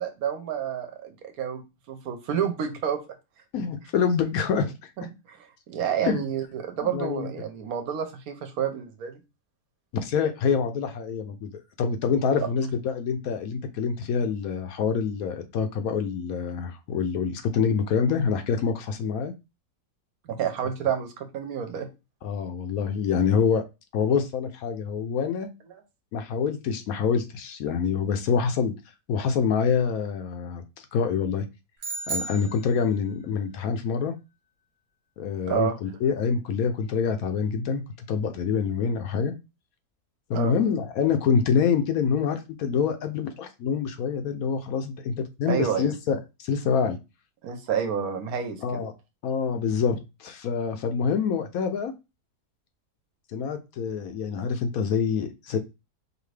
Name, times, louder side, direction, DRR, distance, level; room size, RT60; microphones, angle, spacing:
voice 1, 0.0-1.6 1.9-3.0 5.0-9.2 20.2-21.9 35.5-35.7 40.3-40.5 45.5-45.9 47.4-48.8, right 8 dB, 70° right, 7 dB, 1.1 m, -29 dB
voice 2, 3.5-4.9 6.0-6.3 6.8-7.3 9.9-11.5 11.8-19.3 22.2-23.6 23.9-25.5 26.1-28.7 29.1-31.4 32.1-34.1 35.2-37.8 38.1-39.3 40.3-47.0 48.6-48.9 49.2-51.9 53.3-55.6, left 6 dB, 70° left, 8 dB, 1.0 m, -26 dB
sound 1, 31.8-33.3, right 3 dB, 45° right, 1.0 m, -34 dB
4.9 x 2.6 x 3.2 m, 0.26 s
omnidirectional pair, 1.7 m